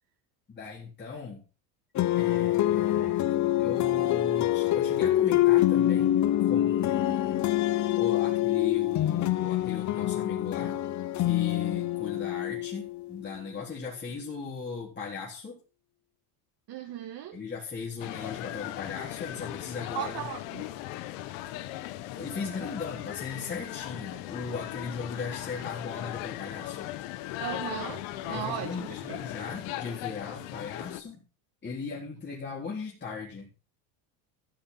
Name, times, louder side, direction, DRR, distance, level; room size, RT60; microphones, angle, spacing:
voice 1, 0.5-1.4 2.1-3.3 3.6-7.5 8.0-10.8 11.2-15.6 17.3-20.3 22.1-26.9 28.3-31.2 31.6-33.5, left 5 dB, 25° left, 3.8 m, -38 dB
sound 1, 2.0-13.1, left 13 dB, 40° left, 0.8 m, -25 dB
voice 2, 16.7-17.4 19.9-20.7 27.4-29.2, right 10 dB, 50° right, 2.2 m, -37 dB
sound 2, 18.0-31.0, left 15 dB, 75° left, 1.3 m, -38 dB
15.0 x 7.2 x 5.7 m
cardioid pair, 125°, 45 cm